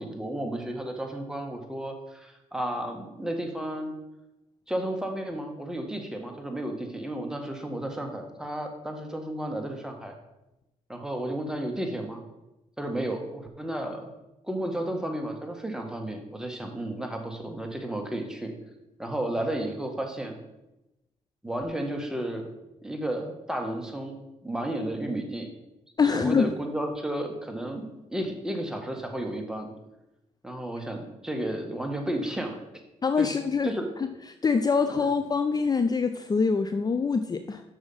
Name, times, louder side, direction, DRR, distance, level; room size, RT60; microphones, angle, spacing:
voice 1, 0.0-3.9 4.7-10.1 10.9-12.2 12.8-14.1 14.4-18.5 19.0-20.4 21.4-22.5 22.8-25.5 26.1-29.7 30.4-32.6 33.2-33.3 33.6-33.9 35.0-35.1, right 1 dB, 5° right, 3 dB, 1.6 m, -33 dB
voice 2, 26.0-26.5 33.0-33.7 34.0-34.1 34.4-37.6, left 5 dB, 30° left, 9 dB, 0.5 m, -24 dB
6.4 x 6.2 x 5.5 m, 0.94 s
cardioid pair, 75°, 13 cm